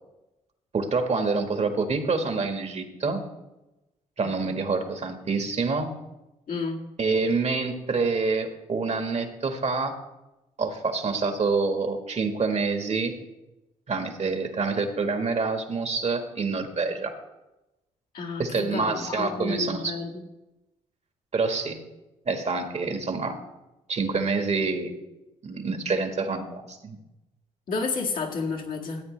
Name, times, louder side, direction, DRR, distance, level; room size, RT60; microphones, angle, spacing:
voice 1, 0.7-3.2 4.2-5.9 7.0-10.0 10.6-13.1 13.9-17.1 18.4-20.0 21.3-21.8 22.2-23.4 23.9-24.9 25.4-27.0, right 4 dB, 50° right, 7 dB, 1.5 m, -27 dB
voice 2, 6.5-6.8 18.1-20.2 27.7-29.0, left 4 dB, 70° left, -1 dB, 1.9 m, -31 dB
14.0 x 8.3 x 3.2 m, 0.98 s
supercardioid pair, 50°, 15 cm